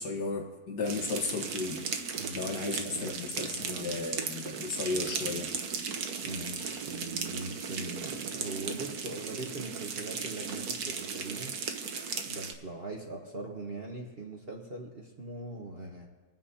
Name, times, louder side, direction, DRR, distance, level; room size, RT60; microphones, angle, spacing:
voice 1, 0.0-1.8 2.3-5.5, left 3 dB, 75° left, 1 dB, 1.9 m, -34 dB
sound 1, 0.8-12.5, right 6 dB, 65° right, 1.4 m, -36 dB
voice 2, 3.5-3.9 6.2-11.6 12.2-16.1, right 2 dB, 40° right, 0 dB, 1.3 m, -41 dB
25.5 x 9.1 x 2.8 m, 1.3 s
omnidirectional pair, 1.8 m